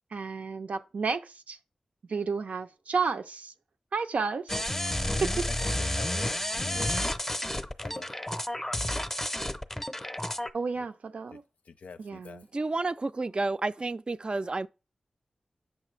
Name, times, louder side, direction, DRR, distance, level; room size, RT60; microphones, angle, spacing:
voice 1, 0.1-1.6 2.1-3.5 3.9-4.6 5.2-5.5 10.5-11.4 12.0-12.5, right 4 dB, 80° right, 0.6 m, -31 dB
sound 1, 4.5-10.5, left 1 dB, 15° left, 0.6 m, -31 dB
voice 2, 5.5-7.4 7.8-8.1 10.8-10.9 11.7-12.4, left 5 dB, 90° left, 0.5 m, -45 dB
voice 3, 12.5-14.7, right 3 dB, 40° right, 0.4 m, -30 dB
8.3 x 5.8 x 3.2 m
cardioid pair, 50°, 2 cm